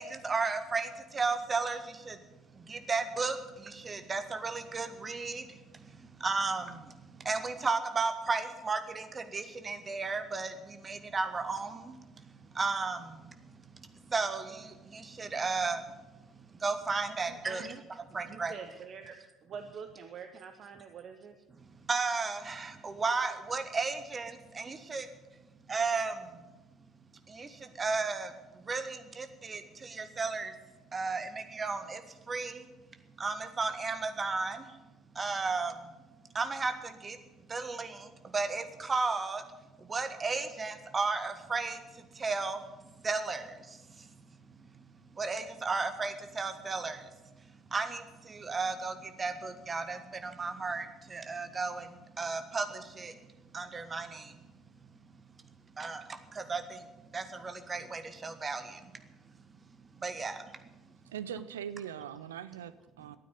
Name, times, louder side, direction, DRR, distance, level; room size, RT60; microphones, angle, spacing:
voice 1, 0.0-2.2 2.6-16.0 16.5-17.7 18.1-18.5 21.6-25.1 25.7-26.4 27.3-30.5 30.9-32.7 33.2-34.8 35.1-35.9 36.3-37.2 37.5-39.4 39.8-42.7 43.0-44.1 44.6-47.1 47.7-53.2 53.5-54.5 55.8-56.8 57.1-58.9 60.0-60.5, right 4 dB, 25° right, 9 dB, 1.5 m, -34 dB
voice 2, 17.3-17.8 18.3-19.2 19.4-21.3, right 6 dB, 45° right, 7 dB, 1.0 m, -45 dB
voice 3, 61.1-63.2, right 9 dB, 75° right, 14 dB, 0.6 m, -41 dB
13.0 x 9.4 x 9.6 m, 1.1 s
figure-of-eight pair, 55°, 0 cm